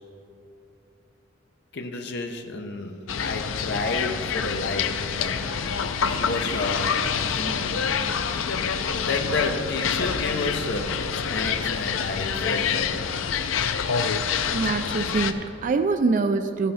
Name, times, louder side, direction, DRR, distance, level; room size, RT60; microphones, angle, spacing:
voice 1, 1.7-5.7 6.2-7.7 8.9-13.1, left 3 dB, 60° left, 4 dB, 0.8 m, -31 dB
sound 1, 3.1-15.3, left 6 dB, 90° left, 0.5 m, -27 dB
sound 2, 5.2-11.0, left 2 dB, 20° left, 0.9 m, -41 dB
voice 2, 14.5-16.7, right 4 dB, 40° right, 7 dB, 0.3 m, -24 dB
14.0 x 5.5 x 5.6 m, 2.7 s
head